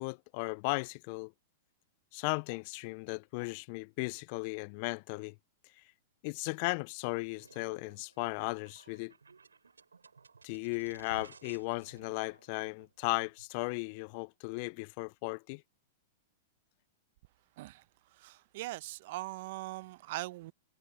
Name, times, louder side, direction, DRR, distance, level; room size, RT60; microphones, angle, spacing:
voice 1, 0.0-1.3 2.1-5.3 6.2-9.1 10.4-15.6, left 31 dB, 50° left, 0.5 m, -36 dB
sound 1, 7.3-13.8, right 5 dB, 85° right, 4.7 m, -57 dB
voice 2, 18.2-20.5, right 19 dB, 55° right, 1.1 m, -41 dB
hypercardioid pair, 105°, 0 cm